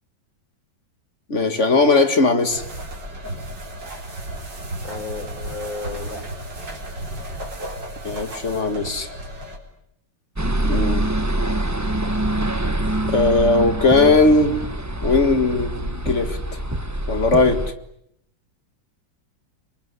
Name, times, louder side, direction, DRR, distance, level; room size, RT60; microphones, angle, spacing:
voice 1, 1.3-2.6 8.0-9.1 10.6-11.1 13.1-14.6 15.0-16.6 17.1-17.6, left 3 dB, 40° left, 9 dB, 2.2 m, -18 dB
sound 1, 2.5-9.6, right 1 dB, 65° right, 4.9 m, -34 dB
voice 2, 4.8-6.2, left 4 dB, 75° left, 7 dB, 5.7 m, -33 dB
sound 2, 10.4-17.7, right 1 dB, 10° right, 1.0 m, -25 dB
27.0 x 23.0 x 9.8 m, 0.75 s
omnidirectional pair, 2.1 m